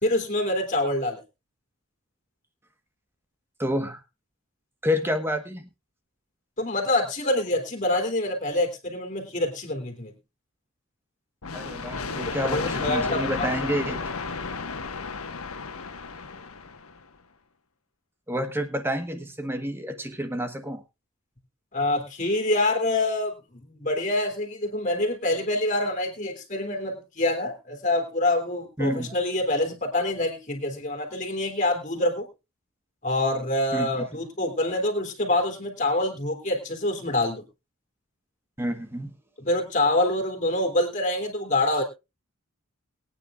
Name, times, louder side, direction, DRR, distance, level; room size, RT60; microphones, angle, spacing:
voice 1, 0.0-1.2 6.6-10.1 12.2-13.5 21.7-32.3 33.0-37.5 39.4-41.8, left 1 dB, 35° left, 4 dB, 3.1 m, -26 dB
voice 2, 3.6-4.0 4.8-5.7 11.5-14.1 18.3-20.8 28.8-29.1 33.7-34.1 38.6-39.1, equal, 10° right, 8 dB, 1.3 m, -29 dB
sound 1, 11.4-17.0, left 4 dB, 85° left, 1.4 m, -33 dB
21.5 x 9.5 x 2.5 m, 0.26 s
head